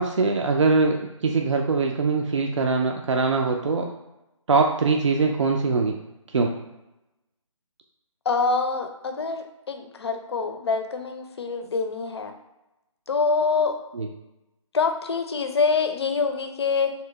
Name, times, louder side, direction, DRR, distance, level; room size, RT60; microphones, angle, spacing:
voice 1, 0.0-3.9 4.5-6.0 6.3-6.5 13.9-14.1, right 4 dB, 65° right, 2 dB, 0.5 m, -22 dB
voice 2, 8.3-12.3 13.1-13.8 14.7-16.9, left 4 dB, 55° left, 7 dB, 0.5 m, -25 dB
3.2 x 2.9 x 3.2 m, 0.95 s
figure-of-eight pair, 150°, 17 cm